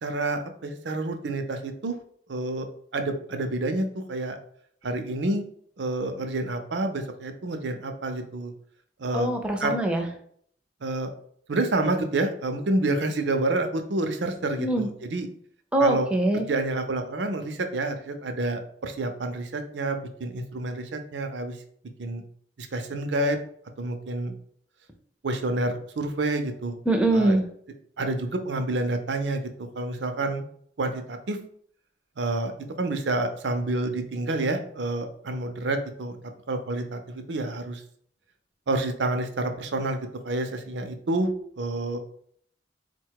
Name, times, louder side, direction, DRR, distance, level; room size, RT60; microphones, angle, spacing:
voice 1, 0.0-2.0 2.3-2.7 2.9-4.4 4.8-5.4 5.8-8.5 9.0-9.3 9.6-9.7 10.8-11.1 11.5-15.3 15.8-16.1 16.3-21.6 22.0-22.2 22.6-23.4 23.8-24.3 25.2-26.8 27.1-27.4 28.0-30.4 30.8-31.4 32.2-32.5 32.8-37.8 38.7-41.3 41.6-42.0, right 2 dB, 75° right, 7 dB, 0.6 m, -28 dB
voice 2, 9.1-10.0 14.6-14.9 15.7-16.4 26.9-27.4, right 2 dB, 5° right, 2 dB, 0.5 m, -23 dB
4.1 x 2.2 x 4.6 m, 0.63 s
head